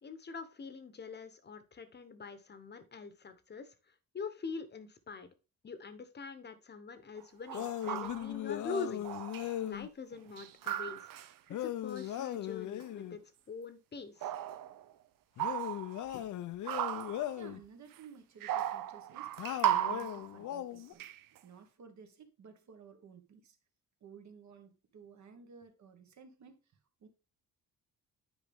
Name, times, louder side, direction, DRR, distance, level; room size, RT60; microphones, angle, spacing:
voice 1, 0.0-5.3 5.6-9.1 9.6-14.3, left 4 dB, 30° left, 1.0 m, -44 dB
sound 1, 7.2-7.3 7.5-8.4 9.0-9.6 10.1-11.3 12.0-12.2 12.8-13.0 14.2-14.9 15.4-16.2 16.7-17.4 17.9-18.0 18.4-20.4 21.0-21.4, right 12 dB, 70° right, 0.6 m, -36 dB
sound 2, 7.5-9.9 11.5-13.2 15.4-17.6 19.4-20.9, left 12 dB, 60° left, 0.6 m, -38 dB
voice 2, 17.3-23.6 24.0-26.6 27.0-27.1, right 6 dB, 55° right, 1.5 m, -55 dB
9.5 x 5.0 x 3.5 m
cardioid pair, 135°, 34 cm